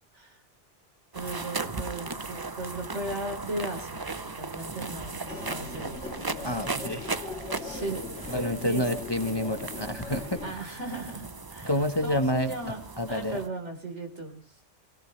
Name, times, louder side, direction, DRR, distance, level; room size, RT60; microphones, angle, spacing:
sound 1, 1.1-13.5, right 3 dB, 25° right, 0.6 m, -37 dB
voice 1, 1.1-6.1 7.6-8.8 10.4-11.7 12.0-12.8 13.1-14.3, right 2 dB, 75° right, 4 dB, 4.3 m, -37 dB
Human voice, 5.3-10.5, left 3 dB, 60° left, 3.3 m, -40 dB
voice 2, 6.4-7.1 8.3-10.4 11.7-12.5 13.0-13.4, left 1 dB, 20° left, 7 dB, 1.2 m, -28 dB
23.5 x 17.0 x 3.2 m, 0.40 s
omnidirectional pair, 1.2 m